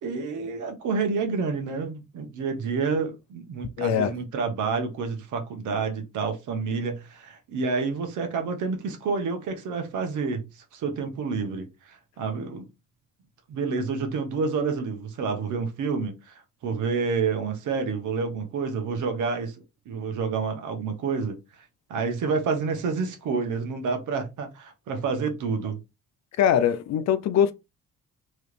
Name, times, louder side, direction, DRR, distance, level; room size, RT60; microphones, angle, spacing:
voice 1, 0.0-12.7 13.5-16.3 16.6-19.5 19.9-21.4 21.9-25.8, right 5 dB, 80° right, 1.0 m, -29 dB
voice 2, 3.8-4.1 26.4-27.5, left 9 dB, 65° left, 0.5 m, -22 dB
3.1 x 2.4 x 3.2 m
cardioid pair, 90°, 30 cm